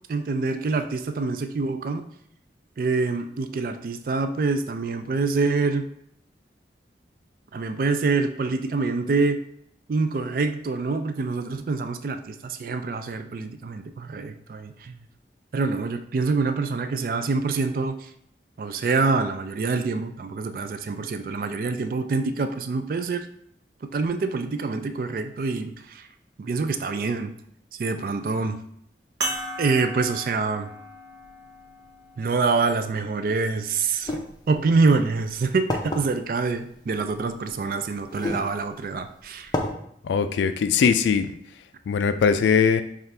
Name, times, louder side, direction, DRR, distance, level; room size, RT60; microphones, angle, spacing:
voice 1, 0.1-2.1 2.8-5.9 7.5-9.4 9.9-15.0 15.5-18.1 18.6-23.3 23.8-26.0 26.4-27.3 27.8-28.6 29.6-30.7 32.2-34.1 34.5-39.5, right 4 dB, 50° right, 9 dB, 0.3 m, -26 dB
sound 1, 29.2-34.0 34.8-34.9 37.0-37.1, right 1 dB, 80° right, 0.8 m, -36 dB
sound 2, 34.0-34.2 35.0-35.1 35.7-36.0 37.3-37.4 38.1-38.5 38.9-39.0 39.5-39.7, left 1 dB, 25° left, 0.4 m, -27 dB
voice 2, 40.0-41.3 41.9-42.8, left 6 dB, 85° left, 10 dB, 0.3 m, -20 dB
5.5 x 2.4 x 3.3 m, 0.69 s
head